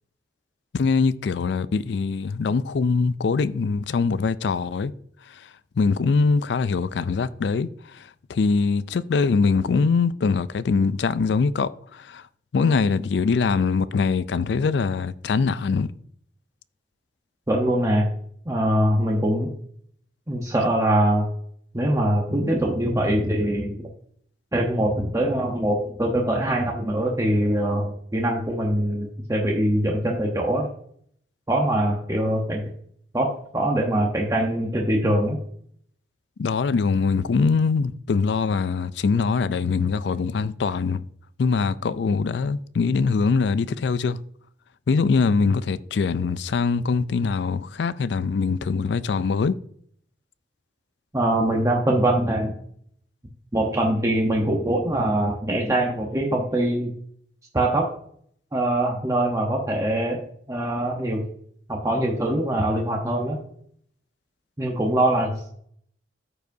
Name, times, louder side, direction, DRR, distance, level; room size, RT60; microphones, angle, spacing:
voice 1, 0.7-4.9 5.3-5.5 5.8-12.2 12.5-15.9 36.4-41.0 41.4-44.2 44.9-49.6, left 4 dB, 65° left, 0.4 m, -23 dB
voice 2, 17.5-18.1 18.5-19.5 20.3-21.3 21.7-23.8 24.5-30.7 31.5-32.6 33.1-35.4 51.1-52.5 53.5-56.9 57.5-57.9 58.5-60.2 60.5-61.2 61.7-63.4 64.6-65.3, right 1 dB, 20° right, 0.9 m, -23 dB
13.5 x 4.9 x 2.7 m
head